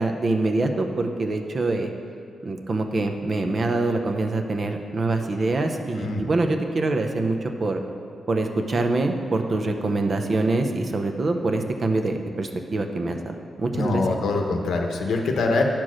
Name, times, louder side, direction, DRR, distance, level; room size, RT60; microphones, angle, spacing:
voice 1, 0.0-1.9 2.4-7.8 8.3-14.2, right 2 dB, 40° right, 5 dB, 0.7 m, -25 dB
voice 2, 13.7-15.6, left 3 dB, 85° left, 3 dB, 0.9 m, -24 dB
10.0 x 4.6 x 6.3 m, 2.3 s
wide cardioid pair, 120°, 0 cm